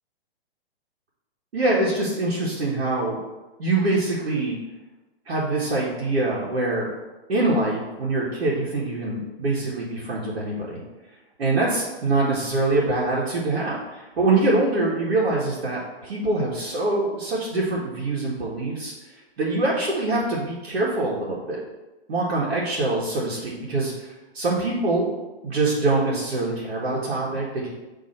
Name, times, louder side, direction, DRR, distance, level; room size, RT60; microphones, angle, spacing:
voice 1, 1.5-3.2 3.6-4.6 5.3-6.9 7.3-10.8 11.4-18.9 19.4-21.6 22.1-25.1 25.4-27.7, right 2 dB, 80° right, -7 dB, 1.8 m, -24 dB
6.6 x 3.4 x 4.3 m, 1.1 s
hypercardioid pair, 165°, 31 cm